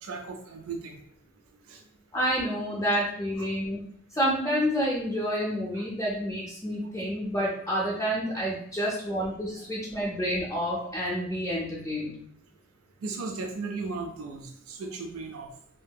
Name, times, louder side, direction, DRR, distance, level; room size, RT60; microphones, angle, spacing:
voice 1, 0.0-1.0 1.5-1.8 5.7-5.9 6.8-6.9 9.5-9.6 13.0-15.5, right 4 dB, 90° right, 3 dB, 0.4 m, -36 dB
voice 2, 2.1-3.8 4.2-12.1, equal, 15° left, -5 dB, 0.4 m, -29 dB
2.7 x 2.6 x 2.2 m, 0.67 s
head